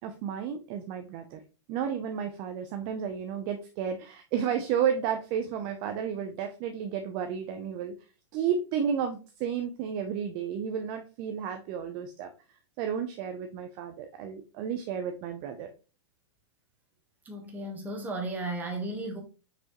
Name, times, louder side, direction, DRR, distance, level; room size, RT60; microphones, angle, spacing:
voice 1, 0.0-1.4 1.7-7.9 8.3-12.3 12.8-15.7, right 8 dB, 30° right, 0.6 m, -32 dB
voice 2, 17.2-19.2, right 2 dB, 10° right, 1.4 m, -34 dB
6.1 x 5.2 x 3.0 m
supercardioid pair, 160°, 15 cm